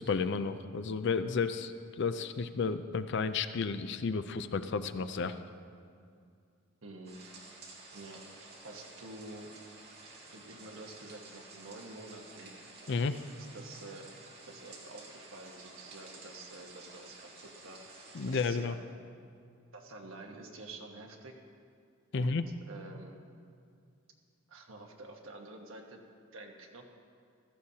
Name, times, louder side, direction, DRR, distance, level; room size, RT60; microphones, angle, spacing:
voice 1, 0.0-5.4 12.9-13.2 18.1-18.7 22.1-22.5, left 4 dB, 60° left, 10 dB, 0.5 m, -32 dB
voice 2, 6.8-7.2 7.9-9.5 10.3-12.5 13.3-14.0 14.4-17.8 18.3-18.8 19.7-21.3 22.1-22.4 22.7-23.2 24.5-26.0 26.3-26.8, right 2 dB, 75° right, 2 dB, 1.3 m, -48 dB
sound 1, 7.0-18.5, right 3 dB, 50° right, 2.3 m, -52 dB
16.0 x 14.0 x 2.8 m, 2.3 s
head